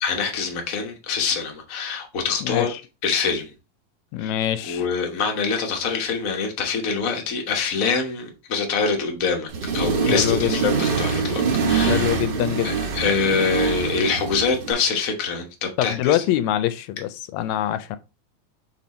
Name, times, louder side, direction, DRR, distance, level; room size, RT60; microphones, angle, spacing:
voice 1, 0.0-2.7 3.0-3.5 4.2-4.3 4.7-11.4 11.7-12.0 12.6-16.2, left 5 dB, 60° left, 0.8 m, -25 dB
voice 2, 2.4-2.8 4.1-4.8 10.1-10.6 11.9-12.8 15.8-18.0, left 12 dB, 80° left, 1.8 m, -24 dB
Accelerating revving vroom, 9.5-14.7, right 5 dB, 55° right, 1.2 m, -24 dB
5.3 x 4.3 x 4.1 m
omnidirectional pair, 3.4 m